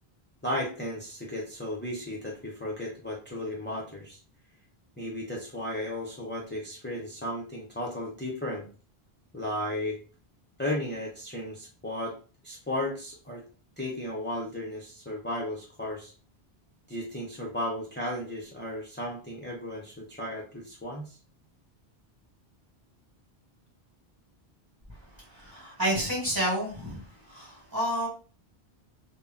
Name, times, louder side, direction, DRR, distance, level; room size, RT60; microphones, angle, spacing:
voice 1, 0.4-4.2 5.0-8.7 9.3-10.0 10.6-12.2 12.4-13.4 13.8-16.1 16.9-21.2, left 1 dB, 20° left, -3 dB, 0.3 m, -34 dB
voice 2, 25.3-27.0 27.3-28.1, equal, 20° right, -3 dB, 1.0 m, -29 dB
2.1 x 2.1 x 3.5 m, 0.37 s
omnidirectional pair, 1.1 m